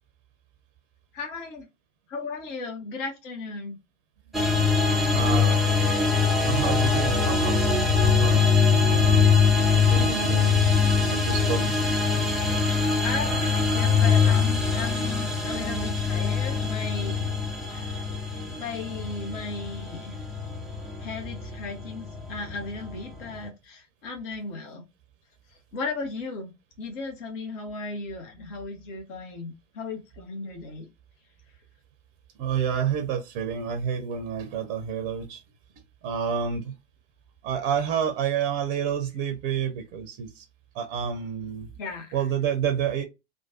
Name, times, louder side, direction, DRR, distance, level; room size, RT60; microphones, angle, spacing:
voice 1, 1.1-1.7 2.1-3.8 13.0-17.3 17.7-18.3 18.6-20.2 21.0-24.8 25.7-26.5 26.8-30.9 41.8-42.2, left 4 dB, 45° left, 1.0 m, -36 dB
sound 1, 4.3-23.5, left 5 dB, ahead, 0.4 m, -23 dB
voice 2, 5.1-5.6 6.5-7.7 8.0-9.2 9.5-10.6 11.1-11.7 32.4-35.4 36.0-36.8 37.4-40.4 40.7-41.7 42.1-43.0, right 8 dB, 40° right, 0.6 m, -29 dB
3.1 x 2.2 x 2.8 m
figure-of-eight pair, 90°, 36 cm